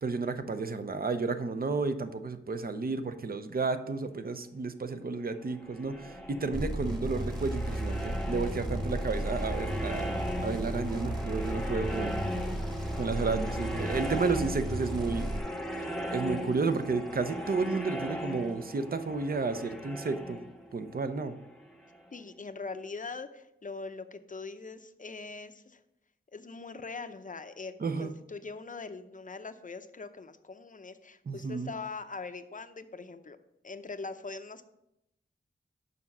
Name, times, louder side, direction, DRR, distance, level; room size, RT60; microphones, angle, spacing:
voice 1, 0.0-10.1 10.4-12.2 13.0-15.3 15.8-20.4 20.7-21.3 27.8-28.1 31.3-31.7, right 4 dB, 45° right, 10 dB, 0.7 m, -32 dB
sound 1, 5.5-22.1, equal, ahead, 0.9 m, -38 dB
sound 2, 6.5-15.4, right 1 dB, 20° right, 1.4 m, -35 dB
voice 2, 22.1-25.8 26.3-33.4 33.6-34.6, left 4 dB, 40° left, 9 dB, 0.6 m, -42 dB
6.8 x 6.0 x 5.4 m, 0.84 s
wide cardioid pair, 75°, 21 cm